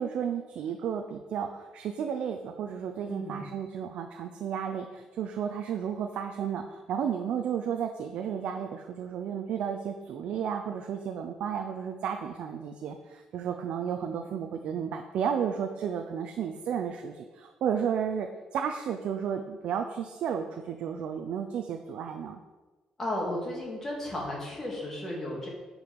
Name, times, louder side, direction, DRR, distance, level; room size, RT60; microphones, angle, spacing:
voice 1, 0.0-22.4, right 8 dB, 65° right, 5 dB, 0.6 m, -33 dB
voice 2, 3.1-3.5 23.0-25.5, left 1 dB, 20° left, -3 dB, 2.4 m, -34 dB
10.5 x 4.9 x 5.3 m, 1.2 s
cardioid pair, 175°, 2 cm